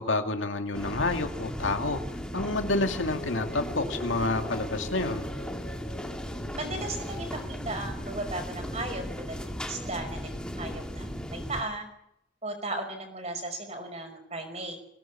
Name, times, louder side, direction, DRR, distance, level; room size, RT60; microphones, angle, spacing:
voice 1, 0.0-2.0 2.3-5.3, left 2 dB, 90° left, 6 dB, 2.4 m, -29 dB
sound 1, 0.7-11.6, equal, 5° left, 2.0 m, -36 dB
sound 2, 3.1-7.8, left 3 dB, 35° left, 3.1 m, -44 dB
voice 2, 6.5-10.3 10.6-11.9 12.4-14.8, right 2 dB, 35° right, 5 dB, 5.5 m, -36 dB
22.0 x 18.0 x 7.4 m, 0.79 s
head